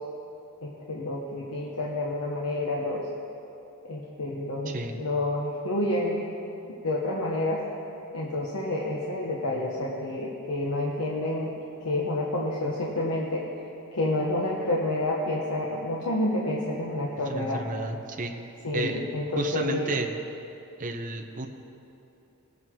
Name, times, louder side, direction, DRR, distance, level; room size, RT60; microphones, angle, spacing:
voice 1, 0.6-3.1 3.9-6.3 6.8-7.6 8.1-11.5 11.8-13.5 13.9-17.6 18.6-20.0, left 1 dB, 85° left, -3 dB, 1.2 m, -29 dB
voice 2, 17.3-18.3 18.7-19.0 19.4-20.1 20.8-21.5, right 2 dB, 35° right, 3 dB, 0.8 m, -31 dB
20.0 x 8.0 x 3.7 m, 2.8 s
head